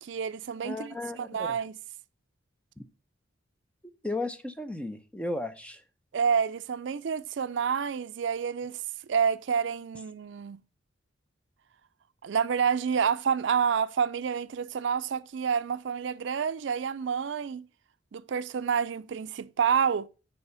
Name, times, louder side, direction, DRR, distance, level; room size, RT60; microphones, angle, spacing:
voice 1, 0.0-1.8 6.1-8.8 9.1-10.6 12.2-17.7 18.1-20.1, right 6 dB, 65° right, 0.4 m, -28 dB
voice 2, 0.6-1.6 2.8-2.9 4.0-5.8, left 2 dB, 5° left, 0.6 m, -35 dB
6.9 x 4.8 x 6.8 m
head